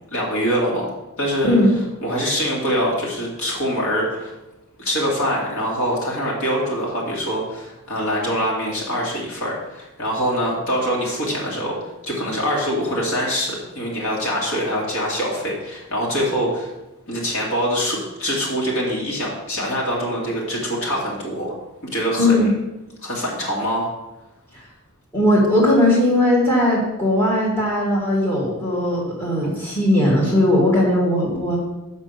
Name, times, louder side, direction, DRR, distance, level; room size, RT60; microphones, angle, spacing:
voice 1, 0.1-0.9 1.2-1.6 2.0-4.3 4.8-11.7 12.0-16.7 17.1-21.5 21.9-22.5 23.0-23.9 29.4-29.5, equal, 60° left, -3 dB, 2.3 m, -24 dB
voice 2, 22.2-22.5 24.5-24.6 25.1-31.6, left 1 dB, 10° left, -5 dB, 2.0 m, -18 dB
6.2 x 5.5 x 6.8 m, 1.0 s
head